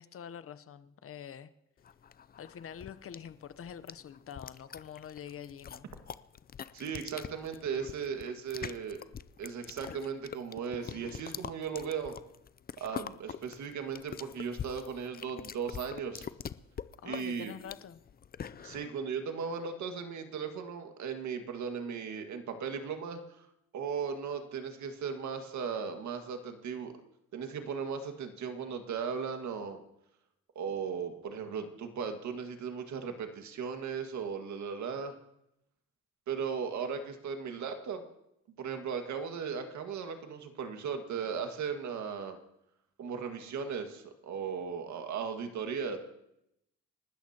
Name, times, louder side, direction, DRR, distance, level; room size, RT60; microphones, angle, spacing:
voice 1, 0.0-1.5 2.4-5.9 17.0-18.0, left 8 dB, 45° left, 13 dB, 0.8 m, -46 dB
sound 1, 1.8-18.9, left 8 dB, 30° left, 0.5 m, -44 dB
voice 2, 6.7-9.0 9.4-12.2 12.8-16.3 17.0-17.5 18.6-23.5 23.7-26.9 27.3-29.8 30.6-35.1 36.3-38.0 38.6-42.4 43.0-46.0, right 6 dB, 70° right, 6 dB, 1.9 m, -37 dB
28.5 x 13.0 x 2.9 m, 0.82 s
cardioid pair, 90°, 30 cm